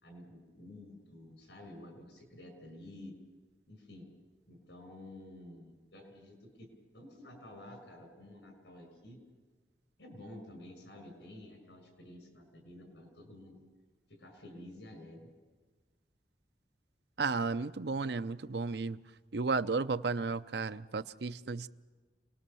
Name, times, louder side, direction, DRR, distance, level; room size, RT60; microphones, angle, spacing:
voice 1, 0.0-3.2 3.7-4.1 4.4-6.7 6.9-9.2 10.0-13.6 14.1-15.3, left 1 dB, 90° left, 5 dB, 6.3 m, -51 dB
voice 2, 17.2-19.0 19.3-21.7, right 4 dB, 70° right, 13 dB, 0.7 m, -33 dB
28.5 x 20.0 x 7.0 m, 1.3 s
head